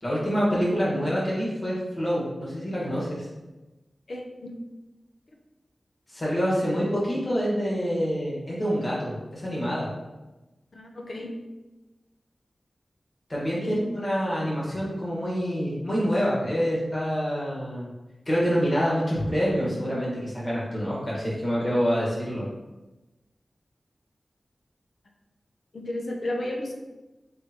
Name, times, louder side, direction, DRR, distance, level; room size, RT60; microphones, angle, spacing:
voice 1, 0.0-3.3 6.1-9.9 13.3-17.9 18.2-22.5, equal, 35° left, -7 dB, 1.5 m, -26 dB
voice 2, 4.1-4.5 10.7-11.3 13.6-13.8 25.7-26.7, left 1 dB, 60° left, 1 dB, 0.6 m, -33 dB
3.9 x 3.4 x 2.9 m, 1.1 s
wide cardioid pair, 105°, 0 cm